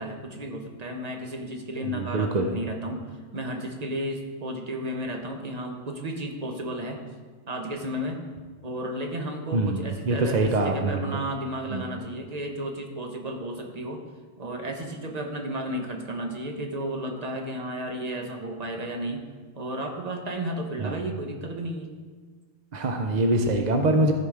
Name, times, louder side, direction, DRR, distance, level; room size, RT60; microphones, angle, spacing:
voice 1, 0.0-3.0 3.3-7.0 7.5-8.2 8.6-14.0 14.4-19.2 19.6-21.9, right 1 dB, 30° right, 2 dB, 1.0 m, -33 dB
voice 2, 1.8-2.5 9.5-11.2 11.7-11.9 20.8-21.1 22.7-24.1, right 2 dB, 65° right, 4 dB, 0.4 m, -24 dB
14.0 x 5.0 x 4.7 m, 1.5 s
omnidirectional pair, 1.6 m